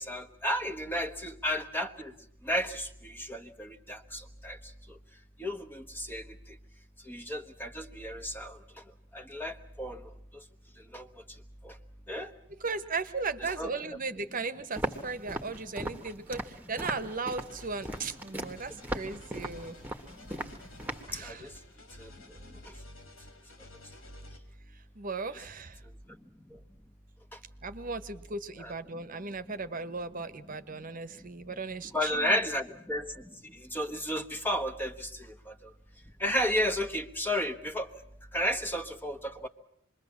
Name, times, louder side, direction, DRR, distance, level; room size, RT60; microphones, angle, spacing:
voice 1, 0.0-2.1 2.4-4.6 5.4-6.2 7.1-8.6 9.1-10.0 10.9-11.1 11.6-11.7 12.1-12.3 13.4-13.7 21.1-21.5 22.0-22.1 28.6-28.7 31.9-33.1 33.7-35.5 36.2-37.9 38.3-39.5, equal, 10° left, 6 dB, 1.2 m, -32 dB
voice 2, 12.6-19.8 21.1-21.5 24.9-25.8 27.6-32.4, right 4 dB, 40° right, 11 dB, 1.1 m, -37 dB
Walk footsteps, 14.7-21.1, right 1 dB, 10° right, 1.5 m, -38 dB
sound 1, 17.5-24.4, left 1 dB, 85° left, 4.1 m, -52 dB
27.0 x 21.5 x 7.3 m, 0.70 s
head